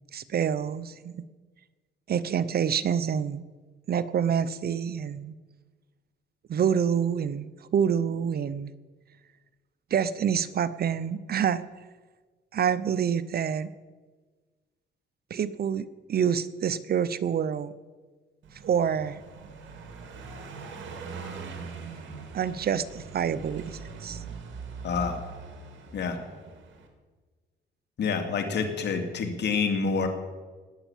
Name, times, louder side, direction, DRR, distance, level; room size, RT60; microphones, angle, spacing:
voice 1, 0.1-1.3 2.1-3.4 3.9-5.3 6.5-8.7 9.9-11.6 12.5-13.7 15.3-17.7 18.6-19.2 22.3-24.2, right 8 dB, 50° right, 15 dB, 0.8 m, -27 dB
Car passing by, 18.4-26.9, right 4 dB, 70° right, 2.7 m, -42 dB
voice 2, 24.8-25.2 25.9-26.2 28.0-30.1, left 5 dB, 60° left, 4 dB, 2.6 m, -27 dB
19.5 x 8.3 x 7.3 m, 1.4 s
cardioid pair, 90°, 20 cm